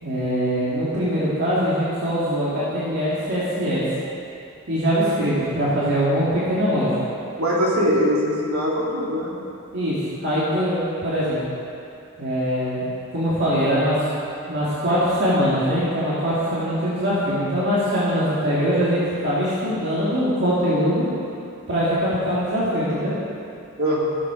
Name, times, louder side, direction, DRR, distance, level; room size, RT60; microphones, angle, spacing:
voice 1, 0.0-3.9 4.7-7.0 9.7-10.0 10.2-11.4 12.2-12.8 13.1-14.0 14.5-21.0 21.7-23.1, equal, 55° right, -9 dB, 2.3 m, -22 dB
voice 2, 7.4-9.3 23.8-24.0, equal, 70° right, -6 dB, 2.9 m, -21 dB
15.0 x 7.4 x 5.1 m, 2.6 s
head